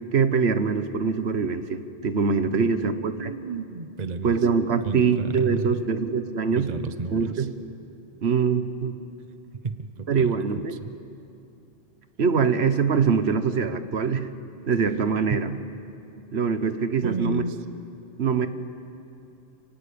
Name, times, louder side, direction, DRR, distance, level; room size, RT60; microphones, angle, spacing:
voice 1, 0.1-3.3 4.2-6.7 7.1-7.5 8.2-8.9 10.1-10.8 12.2-14.3 14.7-15.5 16.3-17.4 18.2-18.5, right 5 dB, 70° right, 10 dB, 1.3 m, -23 dB
voice 2, 2.5-4.4 4.8-5.8 6.6-7.5 9.5-10.5 10.8-10.9 15.3-15.4 17.0-17.6, right 4 dB, 40° right, 10 dB, 1.0 m, -32 dB
29.5 x 19.0 x 8.6 m, 2.7 s
omnidirectional pair, 1.1 m